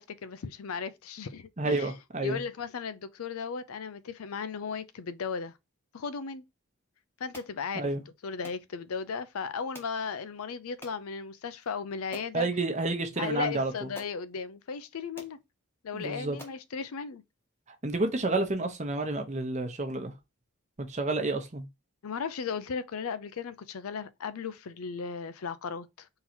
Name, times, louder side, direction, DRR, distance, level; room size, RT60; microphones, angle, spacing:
voice 1, 0.0-1.9 2.2-5.5 5.9-6.4 7.2-7.9 8.2-12.5 13.2-15.4 15.8-17.2 22.0-26.1, left 5 dB, 85° left, 0.5 m, -36 dB
voice 2, 1.6-2.4 7.7-8.0 12.3-13.7 15.9-16.4 17.8-20.1 20.8-21.7, right 2 dB, 35° right, 0.8 m, -30 dB
sound 1, 7.3-7.6 8.4-8.6 9.7-10.0 10.8-11.0 11.6-11.7 12.1-12.4 13.4-13.5 13.9-14.2 14.8-14.9 15.2-15.4 16.0-16.1 16.4-16.7, left 1 dB, 10° left, 0.8 m, -47 dB
3.8 x 2.9 x 4.2 m
head